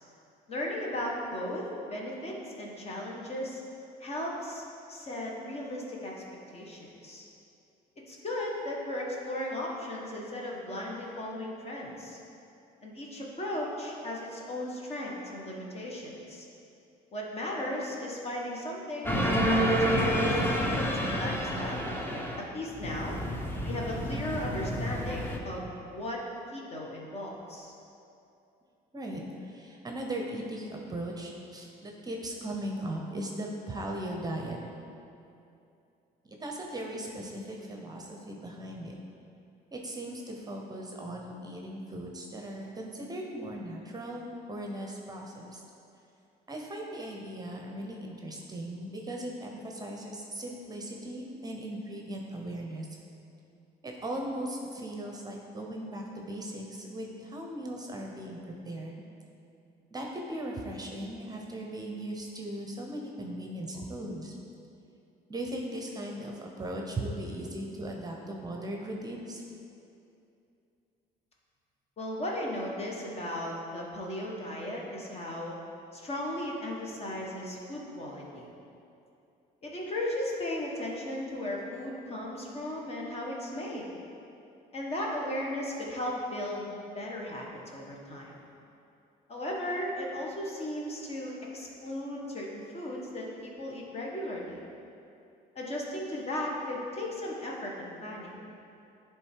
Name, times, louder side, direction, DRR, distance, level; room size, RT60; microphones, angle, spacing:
voice 1, 0.5-3.6 4.0-6.1 6.5-7.2 8.1-12.2 12.8-16.4 17.1-21.9 22.5-23.2 23.6-26.2 26.5-27.7 72.0-75.5 75.9-78.5 79.6-83.9 84.7-87.5 87.7-88.4 89.3-94.6 95.5-98.4, left 1 dB, 35° left, -2 dB, 1.5 m, -36 dB
sound 1, 19.0-22.4 22.7-25.4, equal, 10° left, 0.8 m, -29 dB
voice 2, 28.9-34.6 36.2-39.0 39.7-45.6 46.5-52.9 53.8-59.0 59.9-64.3 65.3-69.4, right 1 dB, 25° right, 1 dB, 0.8 m, -38 dB
10.5 x 3.6 x 4.6 m, 2.7 s
cardioid pair, 110°, 17 cm